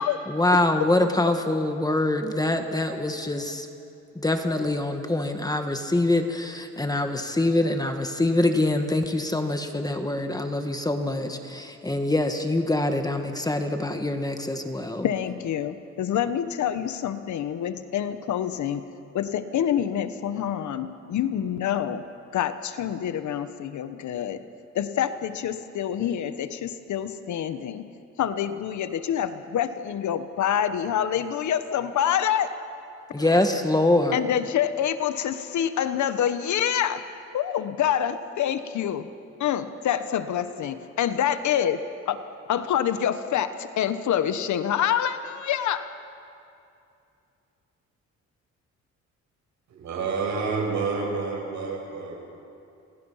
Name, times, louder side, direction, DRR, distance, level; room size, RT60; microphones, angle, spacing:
voice 1, 0.3-3.7 4.1-15.0 33.1-34.2, left 2 dB, 10° left, 6 dB, 1.7 m, -24 dB
voice 2, 15.0-22.0 22.3-24.4 24.7-27.9 28.2-32.5 33.2-33.3 34.1-37.0 37.3-39.1 39.4-42.2 42.5-45.9, left 9 dB, 70° left, 11 dB, 1.3 m, -27 dB
voice 3, 49.7-52.2, right 4 dB, 70° right, 0 dB, 7.3 m, -29 dB
29.0 x 23.5 x 5.8 m, 2.6 s
cardioid pair, 90°, 30 cm